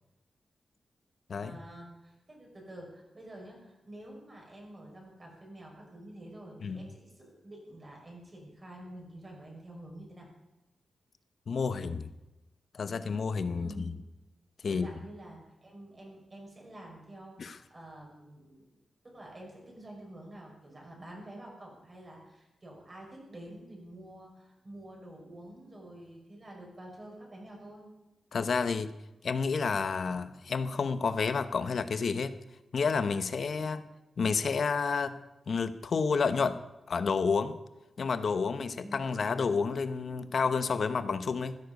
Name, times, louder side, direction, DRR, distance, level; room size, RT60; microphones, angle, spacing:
voice 1, 1.4-10.3 13.6-13.9 14.6-18.6 19.0-27.8 38.8-39.1, right 1 dB, 30° right, -1 dB, 5.9 m, -48 dB
voice 2, 11.5-12.1 12.7-13.9 14.6-14.9 17.4-17.6 28.3-28.9 29.2-32.3 32.7-33.8 34.2-35.2 35.5-36.6 36.9-37.6 38.0-41.6, left 5 dB, 55° left, 11 dB, 0.9 m, -30 dB
15.5 x 13.0 x 5.3 m, 1.0 s
wide cardioid pair, 125°, 0 cm